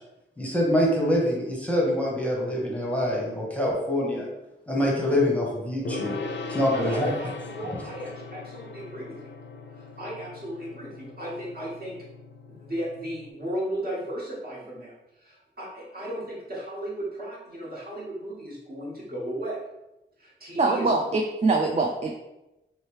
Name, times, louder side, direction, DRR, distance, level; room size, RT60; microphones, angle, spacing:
voice 1, 0.4-4.3 4.7-6.2 6.5-7.1, left 1 dB, 5° left, -3 dB, 0.9 m, -25 dB
Gong, 5.9-13.3, left 3 dB, 65° left, 0.4 m, -39 dB
voice 2, 6.7-9.3 9.7-12.0 12.5-19.6 20.2-20.9, right 1 dB, 50° right, -7 dB, 1.5 m, -35 dB
voice 3, 20.6-22.2, right 3 dB, 35° right, 1 dB, 0.4 m, -23 dB
3.1 x 3.1 x 3.1 m, 0.95 s
wide cardioid pair, 90°, 20 cm